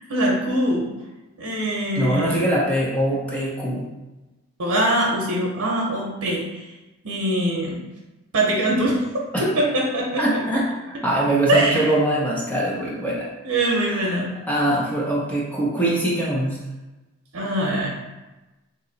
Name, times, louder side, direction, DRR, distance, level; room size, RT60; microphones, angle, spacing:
voice 1, 0.1-0.9 1.4-2.5 4.6-6.6 7.0-7.8 8.3-10.2 11.5-11.9 13.4-14.3 17.3-17.9, right 1 dB, 90° right, -2 dB, 0.8 m, -22 dB
voice 2, 2.0-3.9 9.3-9.4 10.2-13.3 13.6-14.1 14.5-16.6, right 1 dB, 5° left, -6 dB, 0.6 m, -23 dB
3.0 x 2.8 x 3.9 m, 1.1 s
head